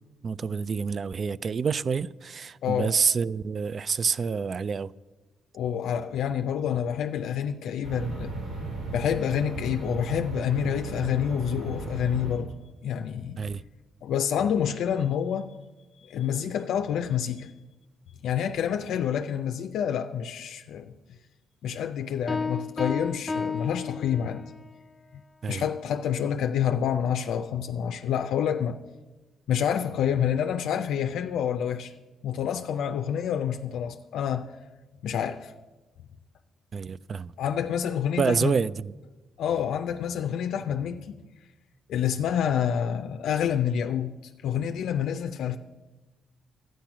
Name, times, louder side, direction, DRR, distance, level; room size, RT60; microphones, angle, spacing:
voice 1, 0.2-4.9 13.4-13.6 25.4-25.6 36.7-37.3 38.2-38.9, right 5 dB, 45° right, 0.3 m, -27 dB
voice 2, 2.6-2.9 5.5-8.3 8.9-12.5 12.8-13.5 14.0-15.5 16.1-17.5 18.2-20.9 21.6-24.5 25.1-25.2 25.5-28.8 29.5-31.9 32.2-34.5 35.0-35.5 37.4-38.6 39.4-41.2 41.9-45.6, left 8 dB, 75° left, 0.4 m, -28 dB
sound 1, 7.8-12.3, right 2 dB, 70° right, 4.0 m, -35 dB
Piano, 22.3-24.6, left 4 dB, 20° left, 0.4 m, -32 dB
12.0 x 9.2 x 6.0 m
cardioid pair, 90°, 0 cm